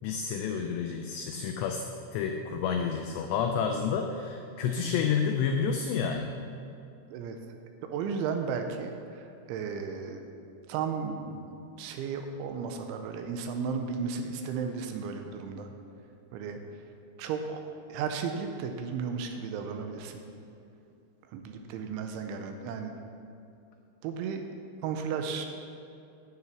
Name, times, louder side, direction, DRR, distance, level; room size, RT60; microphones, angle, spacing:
voice 1, 0.0-1.9 2.1-6.4, left 6 dB, 90° left, 4 dB, 2.4 m, -30 dB
voice 2, 7.8-10.3 10.7-15.7 16.3-16.8 17.2-20.2 21.2-23.0 24.0-24.5 24.8-25.5, right 6 dB, 80° right, 5 dB, 3.0 m, -34 dB
9.5 x 8.1 x 5.8 m, 2.7 s
omnidirectional pair, 5.6 m